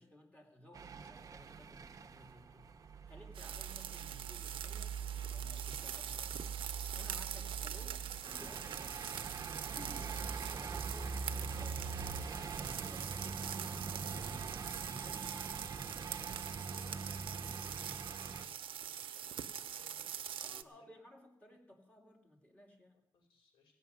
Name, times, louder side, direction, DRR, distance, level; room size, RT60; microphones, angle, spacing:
voice 1, 0.0-2.8 3.1-4.9 5.3-6.5 6.9-9.0 9.7-12.1 12.5-14.6 14.8-15.8 20.4-23.0, left 1 dB, 15° left, 0 dB, 2.8 m, -57 dB
sound 1, 0.7-18.5, right 5 dB, 40° right, 0.8 m, -43 dB
sound 2, 3.3-20.6, right 9 dB, 70° right, 0.7 m, -44 dB
voice 2, 16.4-20.9 23.1-23.8, left 4 dB, 80° left, -1 dB, 5.6 m, -66 dB
16.0 x 6.8 x 9.3 m, 0.78 s
cardioid pair, 135°, 9 cm